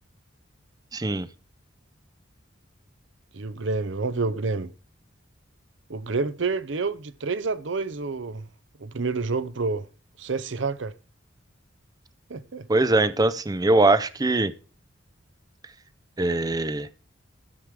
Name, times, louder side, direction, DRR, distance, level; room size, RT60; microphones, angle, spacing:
voice 1, 0.9-1.3 12.7-14.5 16.2-16.9, right 2 dB, 20° right, 0.5 m, -22 dB
voice 2, 3.3-4.7 5.9-8.5 8.8-9.9 10.2-10.9 12.3-12.7, right 4 dB, 60° right, 0.7 m, -28 dB
13.5 x 7.5 x 4.7 m
head